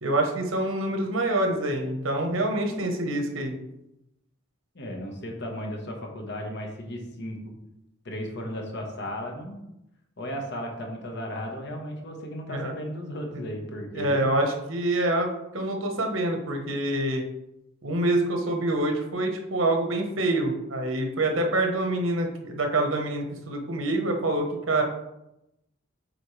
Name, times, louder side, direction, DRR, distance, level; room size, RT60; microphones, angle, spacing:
voice 1, 0.0-3.6 12.5-12.7 13.3-13.4 13.9-17.2 17.8-24.8, right 1 dB, 80° right, 3 dB, 1.2 m, -26 dB
voice 2, 4.7-7.5 8.0-9.6 10.2-14.3, equal, 60° left, 1 dB, 1.4 m, -35 dB
7.9 x 4.3 x 3.3 m, 0.87 s
head